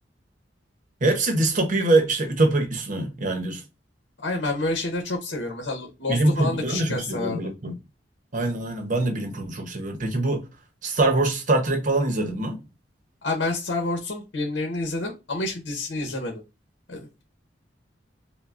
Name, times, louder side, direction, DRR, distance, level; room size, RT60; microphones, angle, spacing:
voice 1, 1.0-3.6 6.1-7.8 8.3-10.4 10.8-12.6, right 2 dB, 45° right, 0.8 m, -23 dB
voice 2, 4.2-7.5 13.2-16.4 16.9-17.2, left 2 dB, 80° left, 0.9 m, -29 dB
5.6 x 2.2 x 2.4 m
head